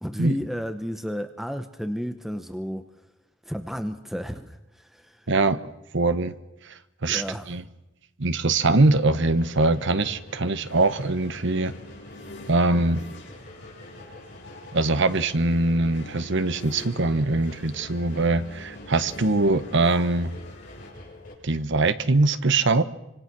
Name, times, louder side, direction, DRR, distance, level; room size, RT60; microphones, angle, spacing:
voice 1, 0.0-2.8 3.5-5.2 7.1-7.5, equal, ahead, 8 dB, 1.0 m, -32 dB
voice 2, 5.3-5.6 5.9-6.3 6.6-7.6 8.2-11.7 12.5-13.0 14.7-20.3 21.4-22.8, right 2 dB, 65° right, 12 dB, 1.2 m, -22 dB
sound 1, 8.6-21.3, left 1 dB, 45° left, 6.7 m, -46 dB
sound 2, 10.7-20.9, left 1 dB, 60° left, 7.7 m, -45 dB
25.5 x 25.5 x 6.2 m, 0.93 s
head